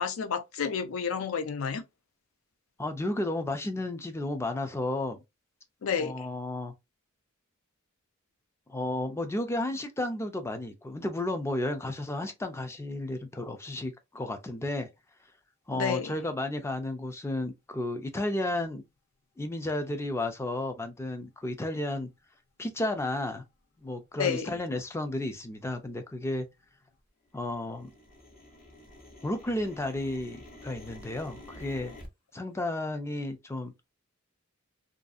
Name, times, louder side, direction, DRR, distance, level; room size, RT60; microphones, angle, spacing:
voice 1, 0.0-1.8 5.8-6.3 15.7-16.1 24.2-24.6, left 6 dB, 75° left, 0.4 m, -30 dB
voice 2, 2.8-5.2 6.0-6.7 8.7-14.9 15.7-18.8 19.4-22.1 22.6-23.4 23.8-26.5 27.3-27.9 29.2-31.9 32.3-33.9, left 1 dB, 15° left, 0.3 m, -33 dB
sound 1, 21.2-21.3 21.9-22.1 22.7-23.0 23.4-23.5 23.8-24.3 24.6-26.9 27.2-32.1, left 1 dB, 45° left, 0.8 m, -50 dB
2.6 x 2.3 x 2.4 m
head